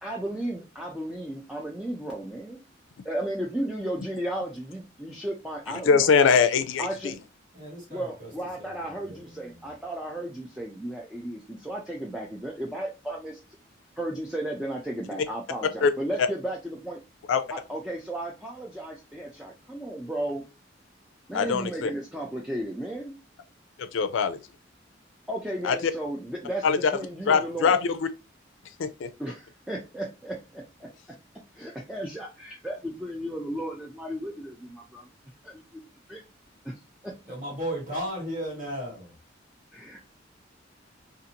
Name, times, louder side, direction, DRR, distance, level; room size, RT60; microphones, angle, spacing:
voice 1, 0.0-2.6 3.0-6.1 6.8-7.1 7.9-13.4 14.0-17.0 17.5-20.4 21.3-23.2 25.3-26.7 26.9-27.7 29.2-30.9 31.5-35.1 35.4-35.6 36.1-36.2 36.6-36.7 37.0-37.1 39.7-40.0, right 1 dB, 5° right, 0.3 m, -34 dB
voice 2, 5.9-7.1 15.8-15.9 17.3-17.4 21.3-21.9 23.8-24.4 25.6-25.9 26.6-26.9 27.3-28.0 28.8-29.1, left 5 dB, 90° left, 0.4 m, -22 dB
voice 3, 7.5-8.3 8.6-8.7 9.0-9.2 37.3-39.1, equal, 45° right, 1.6 m, -34 dB
2.5 x 2.4 x 2.7 m
head